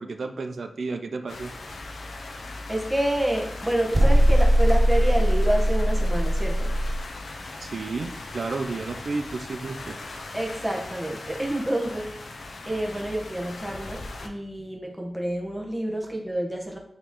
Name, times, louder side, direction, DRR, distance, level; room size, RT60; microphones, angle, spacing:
voice 1, 0.0-1.5 7.6-10.0, right 3 dB, 70° right, 7 dB, 0.6 m, -32 dB
sound 1, 1.3-14.3, left 2 dB, 75° left, 0.8 m, -39 dB
voice 2, 2.7-6.8 10.3-12.1 12.6-16.8, right 1 dB, 10° right, 1 dB, 1.3 m, -28 dB
sound 2, 3.9-7.0, equal, 25° right, 0.7 m, -20 dB
8.9 x 3.2 x 3.7 m, 0.71 s
wide cardioid pair, 75°, 0 cm